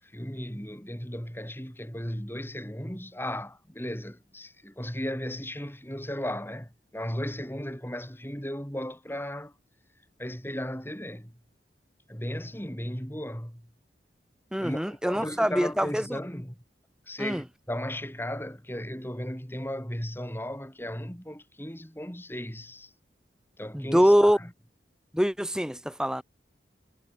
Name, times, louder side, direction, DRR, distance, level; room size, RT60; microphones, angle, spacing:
voice 1, 0.0-9.5 10.2-11.4 12.1-13.7 14.6-16.6 17.1-22.9 23.6-24.5, equal, 10° left, 7.9 m, -36 dB
voice 2, 14.5-16.0 17.2-17.4 23.7-24.4 25.1-26.2, equal, 5° right, 2.8 m, -24 dB
head